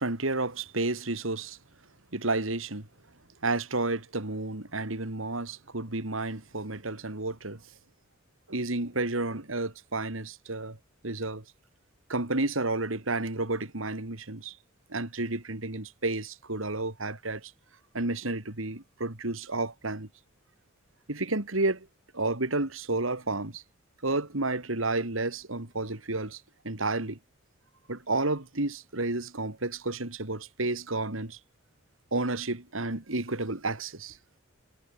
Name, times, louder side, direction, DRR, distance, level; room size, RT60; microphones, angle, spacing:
voice 1, 0.0-1.6 2.1-2.9 3.4-7.6 8.5-10.8 11.0-11.4 12.1-14.6 14.9-17.5 17.9-20.1 21.1-21.9 22.1-23.6 24.0-27.2 27.9-31.4 32.1-34.2, right 2 dB, 85° right, 3.1 m, -31 dB
head